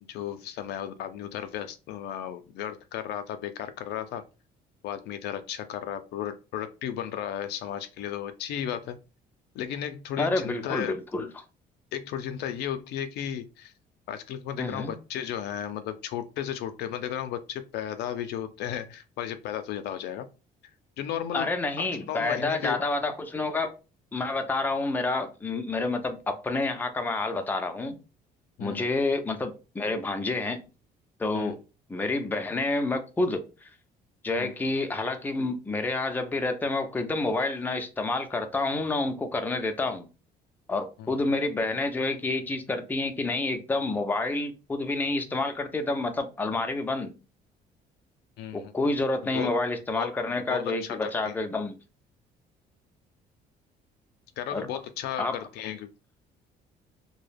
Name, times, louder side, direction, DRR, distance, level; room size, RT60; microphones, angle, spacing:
voice 1, 0.0-4.2 4.8-9.0 9.5-11.0 11.9-13.7 14.1-20.3 21.0-22.8 28.6-28.8 31.3-31.6 34.4-34.5 41.0-41.1 48.4-48.7 49.2-49.5 49.9-50.1 50.5-51.4 54.4-55.9, left 10 dB, 75° left, 0.4 m, -34 dB
voice 2, 10.2-11.3 14.6-14.9 21.3-23.7 24.1-28.0 28.6-30.6 31.2-31.6 31.9-33.7 34.2-40.1 40.7-47.1 48.5-51.8 54.5-54.7 55.2-55.4, left 2 dB, 10° left, 0.4 m, -29 dB
2.2 x 2.0 x 3.2 m
cardioid pair, 110°, 17 cm